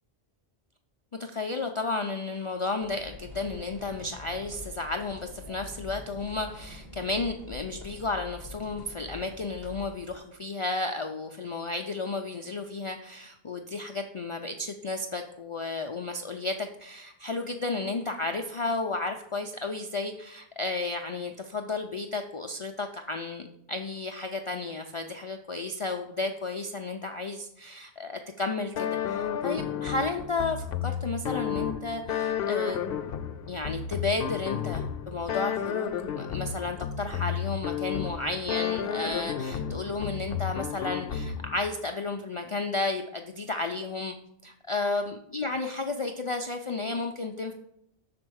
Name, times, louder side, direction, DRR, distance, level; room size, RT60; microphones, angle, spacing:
voice 1, 1.2-32.8 33.5-35.9 36.2-44.2 44.4-47.5, left 3 dB, 50° left, 4 dB, 0.3 m, -33 dB
sound 1, 2.8-10.2, left 2 dB, 65° right, 2.1 m, -45 dB
sound 2, 28.8-41.7, left 8 dB, 70° left, 0.8 m, -32 dB
6.6 x 4.2 x 6.2 m, 0.78 s
omnidirectional pair, 1.1 m